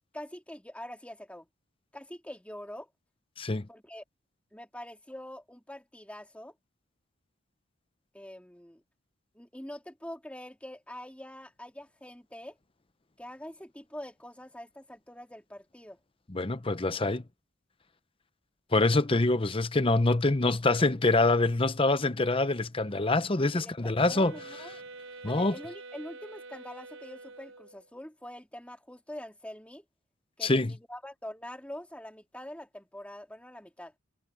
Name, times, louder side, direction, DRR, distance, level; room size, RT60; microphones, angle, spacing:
voice 1, 0.1-1.5 1.9-2.9 3.7-4.0 4.5-6.5 8.1-8.8 9.3-12.6 13.2-16.0 23.5-24.8 25.2-29.8 30.4-33.9, left 1 dB, 5° left, 2.7 m, -44 dB
voice 2, 16.3-17.2 18.7-24.3 25.2-25.5 30.4-30.7, left 2 dB, 25° left, 0.8 m, -25 dB
sound 1, 24.0-27.9, right 3 dB, 75° right, 4.9 m, -46 dB
head